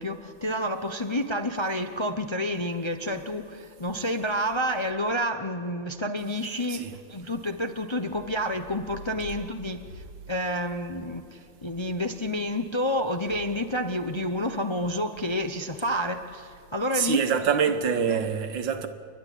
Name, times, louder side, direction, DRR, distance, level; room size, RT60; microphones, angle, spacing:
voice 1, 0.0-17.2 18.1-18.2, equal, 40° left, 0.4 m, -29 dB
voice 2, 6.7-7.0 16.9-18.9, right 7 dB, 85° right, 2.1 m, -25 dB
29.0 x 12.0 x 9.9 m
omnidirectional pair, 2.0 m